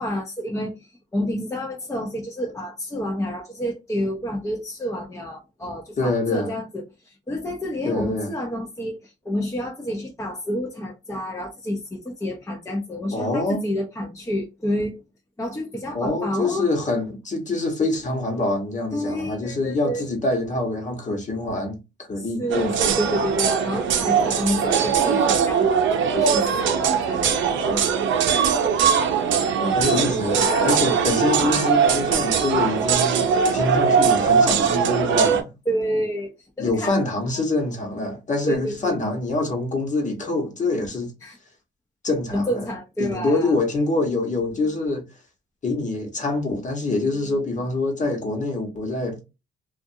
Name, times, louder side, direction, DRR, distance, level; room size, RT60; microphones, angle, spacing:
voice 1, 0.0-15.0 15.4-16.7 18.9-20.0 22.2-27.2 27.5-27.8 30.3-30.7 35.7-37.0 38.5-39.0 41.2-41.4 42.3-43.6, equal, 15° left, 0.7 m, -29 dB
voice 2, 6.0-6.5 7.8-8.3 13.1-13.6 15.9-21.8 22.1-22.8 29.5-35.5 36.6-41.1 42.0-42.7 43.0-45.0 45.6-49.2, left 2 dB, 40° left, 1.2 m, -25 dB
sound 1, 22.5-35.4, right 6 dB, 70° right, 0.6 m, -20 dB
2.6 x 2.4 x 2.7 m
cardioid pair, 90°, 20 cm